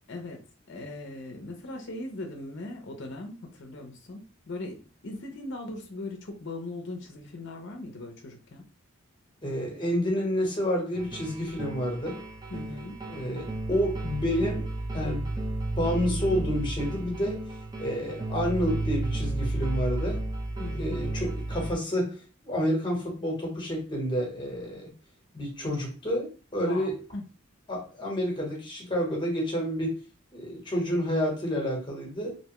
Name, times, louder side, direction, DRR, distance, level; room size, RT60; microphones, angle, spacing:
voice 1, 0.1-8.6 12.5-13.0 20.6-21.1 26.6-27.3, left 2 dB, 60° left, 0.6 m, -39 dB
voice 2, 9.4-12.2 13.1-15.3 15.7-17.4 17.8-20.2 20.7-24.9 25.3-27.0 27.7-30.0 30.3-32.4, equal, 25° left, 1.0 m, -29 dB
sound 1, 10.9-21.7, right 2 dB, 20° right, 0.5 m, -33 dB
2.7 x 2.2 x 2.9 m
head